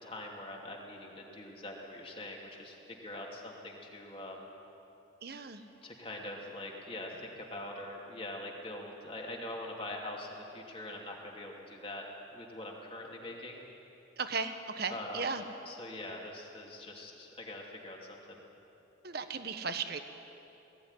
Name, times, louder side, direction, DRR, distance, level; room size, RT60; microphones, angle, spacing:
voice 1, 0.0-4.5 5.8-12.1 12.3-13.6 14.9-18.4, left 1 dB, 30° left, -1 dB, 2.8 m, -43 dB
voice 2, 5.2-5.6 14.2-15.4 19.0-20.0, right 5 dB, 50° right, 8 dB, 1.3 m, -36 dB
20.0 x 16.0 x 9.9 m, 3.0 s
head